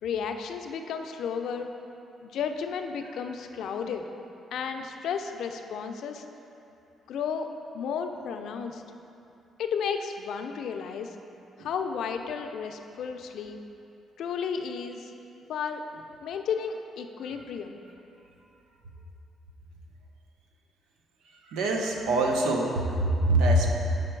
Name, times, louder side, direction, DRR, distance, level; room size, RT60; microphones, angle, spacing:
voice 1, 0.0-1.7 2.2-4.0 4.5-6.2 7.1-7.5 7.7-8.8 9.6-11.1 11.6-13.6 14.2-15.1 15.5-15.8 16.2-17.8, left 6 dB, 75° left, 6 dB, 0.5 m, -33 dB
voice 2, 21.5-23.7, right 1 dB, 90° right, 1 dB, 0.8 m, -24 dB
7.6 x 5.0 x 4.6 m, 2.8 s
cardioid pair, 90°, 0 cm